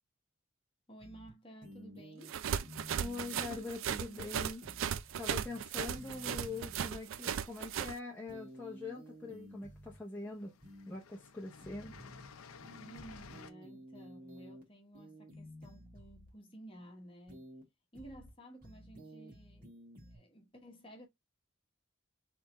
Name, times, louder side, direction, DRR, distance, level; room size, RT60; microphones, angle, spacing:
voice 1, 0.9-2.4 12.8-17.5 17.9-19.7 20.0-21.1, right 1 dB, 25° left, 1.1 m, -54 dB
sound 1, 1.0-1.3 1.6-2.3 2.6-3.6 3.9-4.3 4.6-5.6 5.9-7.0 8.3-10.0 10.6-11.0 11.6-12.3 12.6-14.6 14.9-16.3 17.3-17.6 17.9-18.3 18.6-20.2, equal, 45° right, 1.7 m, -53 dB
sound 2, 2.3-8.0, right 8 dB, 70° right, 0.4 m, -37 dB
voice 2, 3.0-4.6 5.2-10.5 10.9-12.0, left 3 dB, 10° left, 0.7 m, -43 dB
sound 3, 8.1-9.0 9.9-10.0 10.3-13.5, left 5 dB, 90° left, 0.6 m, -54 dB
3.5 x 3.4 x 4.1 m
head